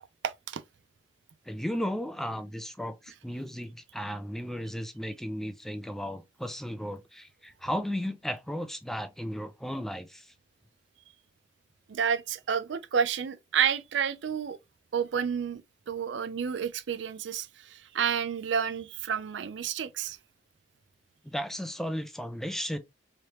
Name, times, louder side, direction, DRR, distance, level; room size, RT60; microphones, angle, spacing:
voice 1, 0.2-0.6 11.9-14.6 14.9-15.6 15.9-20.2, right 7 dB, 70° right, 0.4 m, -30 dB
voice 2, 1.5-10.3 21.2-22.8, equal, ahead, 0.3 m, -35 dB
3.2 x 3.0 x 2.8 m
head